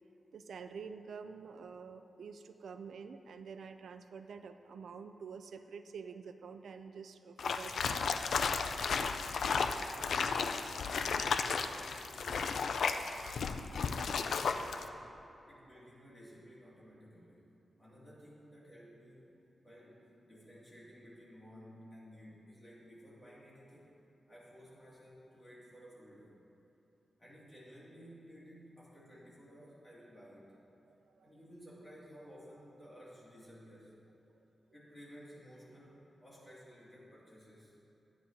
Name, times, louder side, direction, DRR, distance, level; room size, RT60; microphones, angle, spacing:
voice 1, 0.3-8.2 13.0-13.1 30.9-31.4, right 5 dB, 85° right, 9 dB, 0.3 m, -48 dB
sound 1, 7.4-14.9, left 5 dB, 80° left, 0.4 m, -34 dB
voice 2, 9.2-11.0 11.5-12.7 13.7-15.0 15.5-17.5 17.8-19.4 19.6-23.9 24.3-26.3 27.2-30.6 31.2-33.9 34.7-37.7, equal, 20° left, -7 dB, 2.5 m, -55 dB
12.5 x 9.7 x 2.9 m, 2.9 s
wide cardioid pair, 140°, 0 cm